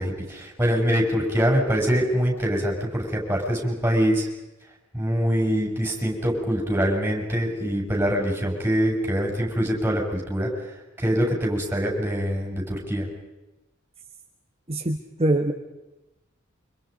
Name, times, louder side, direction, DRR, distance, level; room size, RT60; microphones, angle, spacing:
voice 1, 0.0-4.3 4.9-10.7 11.0-13.1, equal, 10° right, 0 dB, 7.7 m, -24 dB
voice 2, 14.7-15.5, right 1 dB, 30° right, 4 dB, 1.5 m, -23 dB
29.5 x 27.0 x 5.4 m, 1.0 s
head